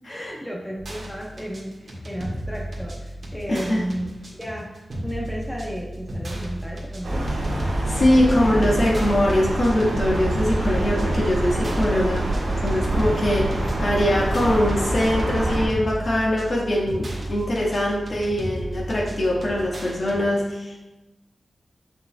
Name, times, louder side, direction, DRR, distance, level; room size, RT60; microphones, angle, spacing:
voice 1, 0.1-4.7 5.0-7.3 12.8-13.3, equal, 5° left, -2 dB, 1.0 m, -33 dB
sound 1, 0.8-20.2, right 1 dB, 55° right, 1.6 m, -35 dB
voice 2, 3.5-3.9 7.9-12.3 12.6-13.5 13.8-20.8, left 1 dB, 50° left, -3 dB, 1.7 m, -22 dB
sound 2, 7.0-15.7, right 1 dB, 75° right, 1.8 m, -25 dB
6.7 x 6.0 x 2.3 m, 1.0 s
cardioid pair, 65°, 0 cm